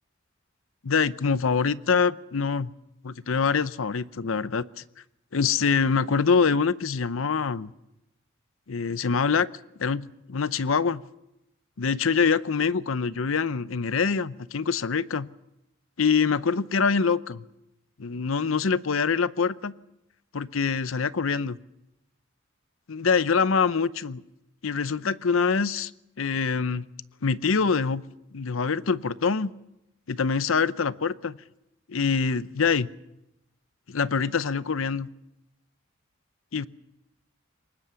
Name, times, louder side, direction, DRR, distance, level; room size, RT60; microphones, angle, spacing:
voice 1, 0.8-2.7 3.0-4.8 5.3-7.7 8.7-9.5 9.8-11.0 11.8-15.3 16.0-17.4 18.0-19.7 20.3-21.6 22.9-24.2 24.6-25.9 26.2-26.9 27.2-28.0 28.3-29.5 30.1-31.4 31.9-32.9 33.9-35.1 36.5-36.7, left 5 dB, 80° left, 16 dB, 0.7 m, -25 dB
23.0 x 20.0 x 6.9 m, 0.90 s
head